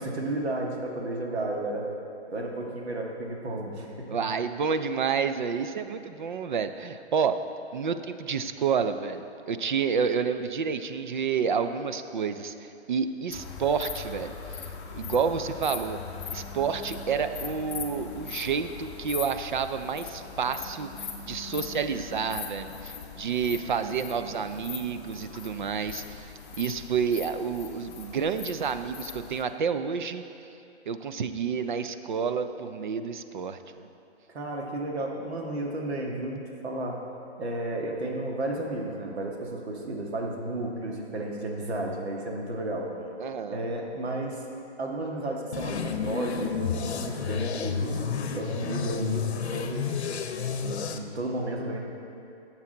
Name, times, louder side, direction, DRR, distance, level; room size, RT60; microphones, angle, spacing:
voice 1, 0.0-1.9 2.3-4.1 34.3-37.0 37.4-42.9 43.4-44.4 44.8-49.9 50.5-51.8, right 1 dB, 70° right, 0 dB, 1.6 m, -33 dB
voice 2, 4.1-7.4 7.7-14.6 14.9-16.0 16.3-26.3 26.6-30.2 30.9-33.9 43.2-43.6, right 6 dB, 45° right, 10 dB, 0.5 m, -29 dB
sound 1, 13.3-29.4, left 6 dB, 25° left, 0.7 m, -40 dB
sound 2, 45.5-51.0, left 6 dB, 70° left, 0.8 m, -31 dB
12.5 x 7.3 x 3.8 m, 2.7 s
hypercardioid pair, 160°, 34 cm